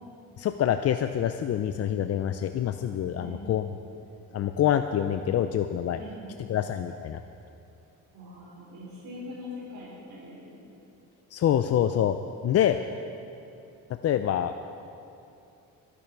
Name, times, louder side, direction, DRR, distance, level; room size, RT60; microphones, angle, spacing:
voice 1, 0.4-3.6 4.3-6.0 6.5-7.2 11.3-12.2 12.4-12.8 14.0-14.6, left 10 dB, 45° left, 9 dB, 0.5 m, -26 dB
voice 2, 6.0-6.6 8.1-10.6, left 1 dB, 70° right, -7 dB, 4.3 m, -42 dB
21.0 x 11.0 x 4.6 m, 2.8 s
cardioid pair, 140°, 36 cm